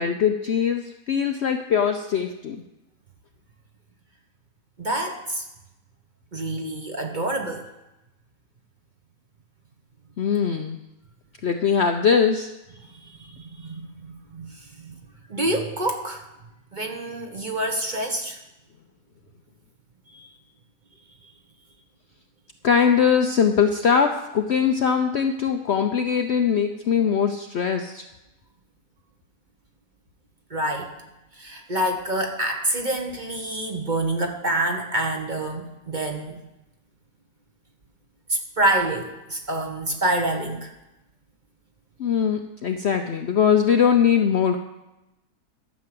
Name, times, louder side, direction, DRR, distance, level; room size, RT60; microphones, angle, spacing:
voice 1, 0.0-2.6 10.2-10.8 11.4-12.5 22.6-28.0 42.0-44.6, left 7 dB, 60° left, 5 dB, 0.7 m, -21 dB
voice 2, 4.8-5.4 6.3-7.6 12.8-14.9 15.3-16.2 16.7-18.4 20.1-20.3 30.5-30.9 31.3-36.4 38.3-40.7, right 1 dB, 35° right, 2 dB, 1.2 m, -27 dB
12.0 x 6.2 x 7.7 m, 0.95 s
omnidirectional pair, 1.7 m